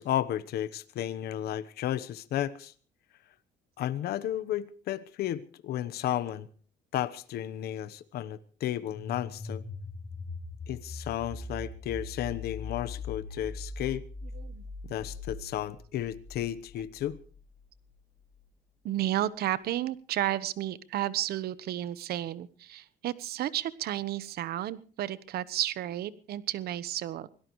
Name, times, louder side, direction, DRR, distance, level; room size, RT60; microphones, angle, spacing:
voice 1, 0.0-2.7 3.8-6.5 6.9-9.6 10.7-14.0 14.9-17.2, left 12 dB, 70° left, 1.1 m, -33 dB
sound 1, 8.9-17.6, left 3 dB, 40° left, 3.3 m, -41 dB
voice 2, 18.8-27.4, right 13 dB, 70° right, 1.1 m, -32 dB
24.5 x 17.5 x 3.2 m
cardioid pair, 110°, 17 cm